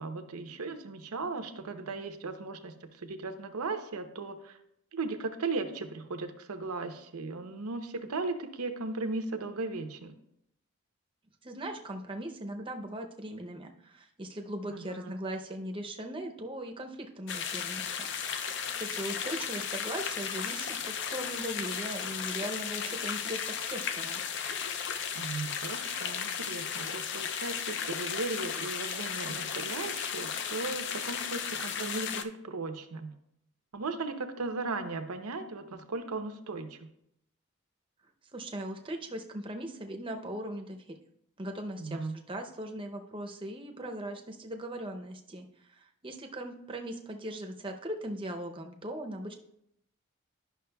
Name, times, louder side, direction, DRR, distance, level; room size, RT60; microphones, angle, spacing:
voice 1, 0.0-2.7 3.0-4.6 4.9-10.1 14.7-15.1 25.1-33.1 33.7-36.8 41.8-42.1, right 3 dB, 90° right, 7 dB, 0.7 m, -37 dB
voice 2, 11.4-18.1 18.8-24.2 38.3-40.8 41.4-49.3, right 1 dB, 25° right, 4 dB, 0.6 m, -39 dB
sound 1, 17.3-32.2, left 7 dB, 50° left, 0.4 m, -35 dB
11.0 x 5.9 x 2.3 m, 0.77 s
head